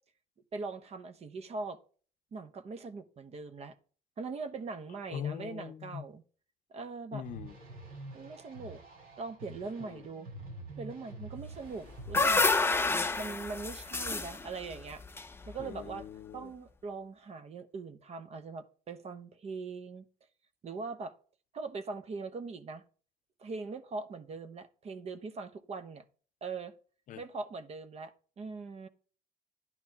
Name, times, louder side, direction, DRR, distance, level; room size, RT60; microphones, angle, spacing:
voice 1, 0.5-1.8 2.3-3.7 4.2-6.2 6.7-7.2 8.1-8.8 9.2-10.3 10.8-12.5 13.2-15.0 15.5-16.1 16.3-20.0 20.6-21.1 21.5-22.8 23.4-26.0 26.4-26.7 27.2-28.9, right 4 dB, 45° right, 1.0 m, -41 dB
voice 2, 5.1-6.1 7.1-7.5 9.8-10.0 15.6-16.5 27.1-27.2, left 8 dB, 60° left, 0.6 m, -41 dB
sound 1, 7.2-12.3, right 2 dB, 85° right, 6.0 m, -47 dB
sound 2, 11.7-15.9, left 3 dB, 15° left, 0.6 m, -29 dB
11.0 x 9.6 x 2.9 m
cardioid pair, 95°, 15 cm